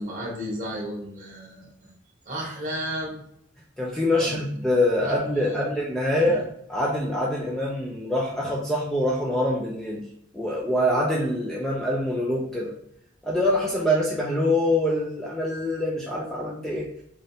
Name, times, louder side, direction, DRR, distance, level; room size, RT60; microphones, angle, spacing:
voice 1, 0.0-1.9 2.2-3.2 4.2-4.4 5.0-5.8 6.1-6.4, equal, 40° right, -2 dB, 1.2 m, -34 dB
voice 2, 3.8-6.4 6.7-10.0 10.3-12.7 13.2-16.9, left 1 dB, 5° left, -4 dB, 0.4 m, -25 dB
3.7 x 3.3 x 2.7 m, 0.73 s
head